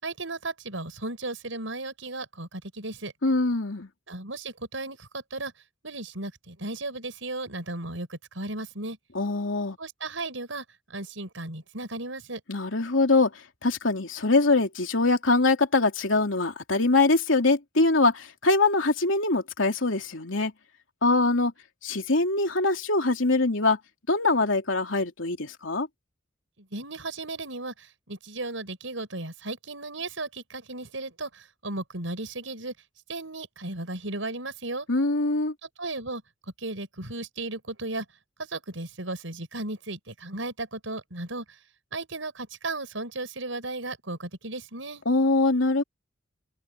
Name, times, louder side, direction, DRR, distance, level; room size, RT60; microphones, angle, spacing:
voice 1, 0.0-3.1 4.1-5.5 5.8-9.0 9.8-10.6 10.9-12.4 26.6-32.7 33.1-34.9 35.8-36.2 36.6-38.1 38.4-41.4 41.9-45.0, right 2 dB, 85° right, 5.7 m, -35 dB
voice 2, 3.2-3.9 9.1-9.8 12.5-13.3 13.6-20.5 21.0-21.5 21.8-23.8 24.1-25.9 34.9-35.5 45.0-45.8, left 3 dB, 90° left, 3.1 m, -23 dB
open air
head